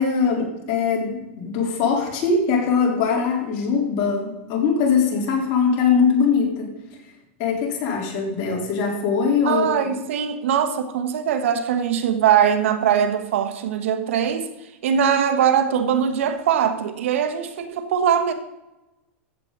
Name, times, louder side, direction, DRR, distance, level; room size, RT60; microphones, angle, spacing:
voice 1, 0.0-6.7 7.4-9.9, left 5 dB, 50° left, 3.7 m, -21 dB
voice 2, 9.4-14.5 14.8-18.3, right 8 dB, 80° right, 1.4 m, -21 dB
15.0 x 7.5 x 4.0 m
supercardioid pair, 125°, 7 cm